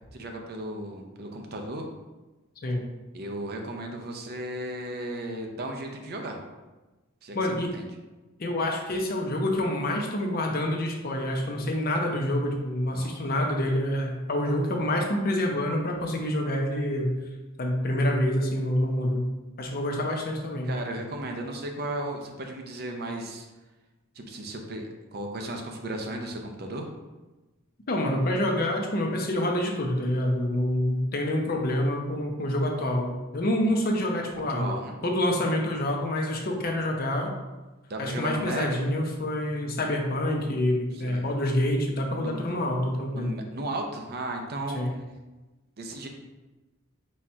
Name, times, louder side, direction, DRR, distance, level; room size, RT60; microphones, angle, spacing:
voice 1, 0.1-1.9 3.1-6.4 7.2-7.9 12.9-13.1 20.6-23.5 24.1-26.9 34.5-35.0 37.9-38.8 40.9-41.3 42.2-42.5 43.1-44.8 45.8-46.1, right 1 dB, 45° right, 3 dB, 0.6 m, -35 dB
voice 2, 7.3-7.7 8.4-17.1 17.6-19.3 19.6-20.7 27.9-34.7 35.0-37.3 38.0-43.4 44.7-44.9, left 1 dB, 45° left, 1 dB, 0.6 m, -27 dB
4.2 x 2.4 x 4.3 m, 1.2 s
head